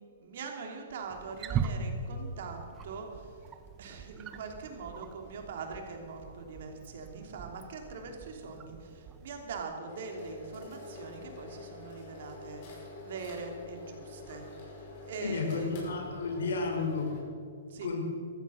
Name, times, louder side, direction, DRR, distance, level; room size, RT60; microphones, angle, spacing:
voice 1, 0.2-3.4 3.8-12.6 13.0-15.8 17.7-17.9, right 4 dB, 60° right, 3 dB, 2.9 m, -42 dB
Wild animals, 1.1-9.6, right 6 dB, 20° right, 1.0 m, -40 dB
sound 1, 9.9-17.2, left 2 dB, 45° left, 5.2 m, -47 dB
voice 2, 15.2-17.1 17.8-18.0, left 4 dB, 75° left, 3 dB, 3.9 m, -32 dB
14.5 x 14.0 x 6.3 m, 2.3 s
hypercardioid pair, 140°, 0 cm